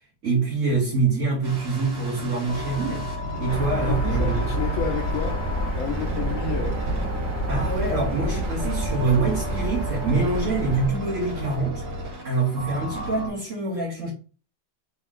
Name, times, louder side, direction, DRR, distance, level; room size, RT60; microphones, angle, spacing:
voice 1, 0.2-3.1 3.4-4.5 7.5-11.8 12.2-14.1, right 3 dB, 50° right, 1.6 m, -25 dB
sound 1, 1.4-13.3, equal, 65° right, 1.9 m, -33 dB
sound 2, 3.5-10.9, right 1 dB, 30° right, 1.2 m, -28 dB
voice 2, 3.7-5.4 5.8-6.8, left 6 dB, 65° left, 0.8 m, -31 dB
3.6 x 3.1 x 3.6 m
omnidirectional pair, 1.9 m